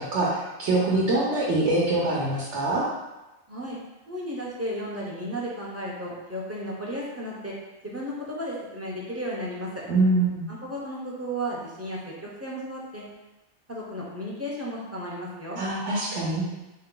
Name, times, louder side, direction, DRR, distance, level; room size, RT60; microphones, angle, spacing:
voice 1, 0.0-2.8 9.9-10.4 15.6-16.4, right 2 dB, 70° right, -5 dB, 1.0 m, -24 dB
voice 2, 3.5-3.8 4.1-7.5 7.8-9.7 10.5-13.0 13.7-15.6, equal, 20° right, -5 dB, 0.5 m, -34 dB
4.3 x 2.2 x 3.7 m, 1.0 s
omnidirectional pair, 1.2 m